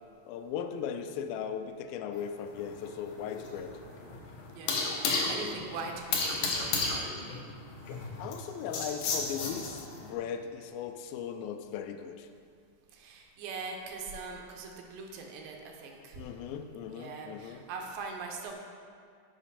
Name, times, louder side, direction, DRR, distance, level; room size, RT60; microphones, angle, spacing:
voice 1, 0.2-3.7 7.9-12.3 16.2-17.6, left 8 dB, 90° left, 8 dB, 2.4 m, -38 dB
sound 1, 2.2-10.1, left 3 dB, 70° left, 2.2 m, -33 dB
voice 2, 4.5-7.4 7.9-8.1 12.9-16.2 16.9-18.5, right 4 dB, 80° right, 2 dB, 2.4 m, -42 dB
7.4 x 5.1 x 5.5 m, 2.2 s
omnidirectional pair, 4.1 m